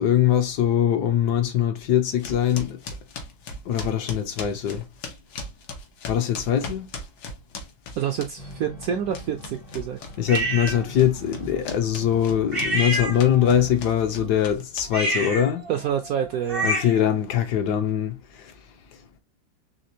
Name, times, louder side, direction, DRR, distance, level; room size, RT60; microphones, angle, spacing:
voice 1, 0.0-2.8 3.7-4.8 6.1-6.9 10.2-15.6 16.6-18.1, left 10 dB, 70° left, 1.1 m, -22 dB
sound 1, 2.2-8.6 8.8-15.2, left 2 dB, 90° left, 1.7 m, -38 dB
voice 2, 8.0-10.0 15.7-16.7, right 9 dB, 70° right, 0.8 m, -27 dB
sound 2, 8.4-14.5, equal, 45° left, 0.5 m, -43 dB
sound 3, 10.3-10.8 12.5-13.6 14.8-17.1, right 1 dB, 35° right, 0.5 m, -28 dB
4.3 x 3.3 x 2.7 m
omnidirectional pair, 2.0 m